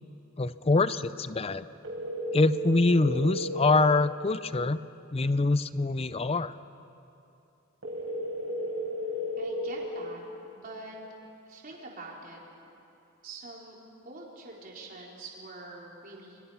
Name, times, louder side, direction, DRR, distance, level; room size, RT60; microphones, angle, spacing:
voice 1, 0.4-1.7 2.3-4.8 5.1-6.5, left 3 dB, 30° left, 14 dB, 0.5 m, -25 dB
sound 1, 1.8-3.9 7.8-9.8, equal, 70° right, 5.3 m, -33 dB
voice 2, 9.4-10.2 10.5-11.0 11.5-12.4 13.2-13.8 14.0-16.4, right 2 dB, 45° right, -2 dB, 4.1 m, -44 dB
29.5 x 23.5 x 5.7 m, 2.9 s
head